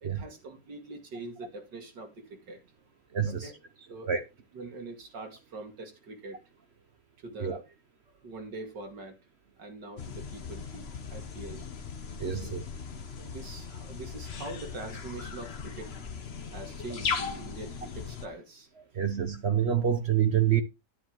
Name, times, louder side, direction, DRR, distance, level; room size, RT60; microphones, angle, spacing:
voice 1, 0.0-2.6 3.2-4.1 4.5-6.4 7.2-7.6 8.1-9.2 9.6-11.6 12.3-12.6 13.2-15.9 16.5-18.7, right 2 dB, 90° right, 2.8 m, -43 dB
voice 2, 3.1-3.5 4.1-4.2 7.4-7.6 12.2-12.6 18.9-20.6, right 9 dB, 50° right, 0.9 m, -26 dB
sound 1, 10.0-18.3, left 5 dB, 45° left, 1.1 m, -38 dB
10.0 x 9.7 x 3.0 m
omnidirectional pair, 1.8 m